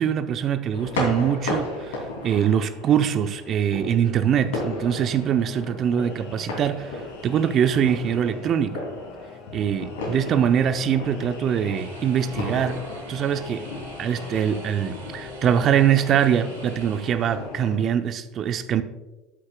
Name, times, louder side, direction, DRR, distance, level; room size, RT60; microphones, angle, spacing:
voice 1, 0.0-2.0 2.2-8.8 9.5-12.8 13.1-13.6 14.0-18.8, right 9 dB, 45° right, 10 dB, 0.7 m, -23 dB
sound 1, 0.7-17.8, left 2 dB, 75° left, 2.7 m, -35 dB
sound 2, 4.3-17.7, left 4 dB, 45° left, 1.9 m, -43 dB
sound 3, 11.7-17.0, right 8 dB, 75° right, 1.1 m, -49 dB
12.5 x 8.6 x 2.3 m, 1.1 s
hypercardioid pair, 70°, 0 cm